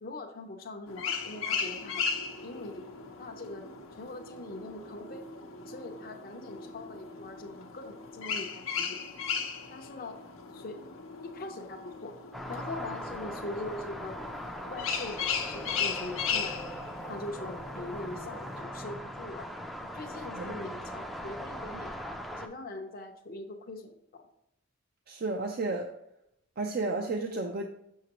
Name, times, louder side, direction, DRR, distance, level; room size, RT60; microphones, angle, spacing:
voice 1, 0.0-2.1 2.4-2.9 3.2-3.7 4.0-5.2 5.7-9.0 9.7-10.2 10.5-10.9 11.2-12.1 12.5-14.2 14.7-16.7 17.1-19.5 19.9-21.9 22.3-24.3, left 2 dB, 50° left, 2 dB, 0.7 m, -42 dB
sound 1, 0.9-18.6, left 6 dB, 90° left, 0.8 m, -37 dB
sound 2, 12.3-22.5, equal, ahead, 0.5 m, -40 dB
voice 2, 25.1-25.9 26.6-27.6, right 3 dB, 50° right, 3 dB, 0.5 m, -32 dB
6.6 x 6.4 x 2.9 m, 0.80 s
head